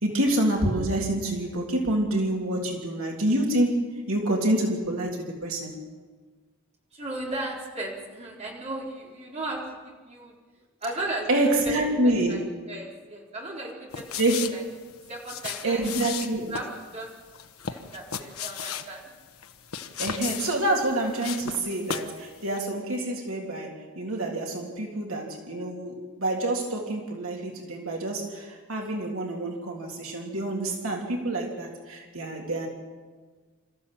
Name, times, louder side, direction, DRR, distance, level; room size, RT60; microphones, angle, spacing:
voice 1, 0.0-5.8 11.3-12.5 14.2-14.5 15.6-16.5 20.0-32.7, right 1 dB, 65° right, 0 dB, 3.2 m, -27 dB
voice 2, 6.9-10.3 10.8-14.2 14.5-14.6 15.1-15.8 16.5-17.1 17.7-19.0, right 2 dB, 30° right, -3 dB, 4.2 m, -36 dB
Footsteps Tile Male Tennis Shoes Scuffs, 13.9-22.2 22.5-22.6, left 7 dB, 75° left, 1.2 m, -36 dB
26.5 x 14.5 x 7.6 m, 1.4 s
head